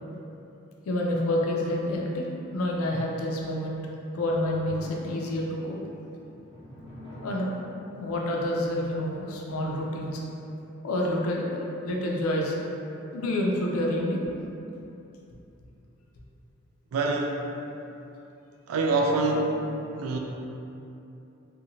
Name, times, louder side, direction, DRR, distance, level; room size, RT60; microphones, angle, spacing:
voice 1, 0.9-2.2 2.5-3.8 4.1-5.8 7.2-7.5 8.0-10.2 10.8-12.5 13.1-14.2, left 1 dB, 90° left, -2 dB, 0.4 m, -28 dB
sound 1, 4.1-11.0, equal, 25° left, 0.6 m, -47 dB
voice 2, 16.9-17.4 18.7-19.6 20.0-20.2, right 3 dB, 80° right, 1 dB, 0.3 m, -25 dB
2.8 x 2.2 x 2.6 m, 2.9 s
head